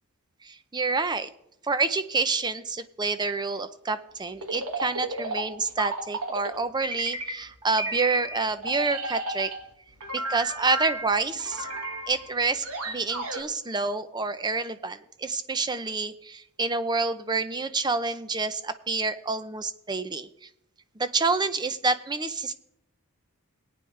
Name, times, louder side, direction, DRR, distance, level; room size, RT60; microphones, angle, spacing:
voice 1, 0.4-1.3 1.6-9.5 10.1-11.7 12.1-20.3 21.0-22.5, right 3 dB, 20° right, 12 dB, 0.6 m, -28 dB
sound 1, 4.4-6.5 6.8-7.5 7.8-9.6 10.0-13.4, right 2 dB, 85° right, 2.0 m, -33 dB
18.5 x 9.4 x 3.3 m, 0.80 s
head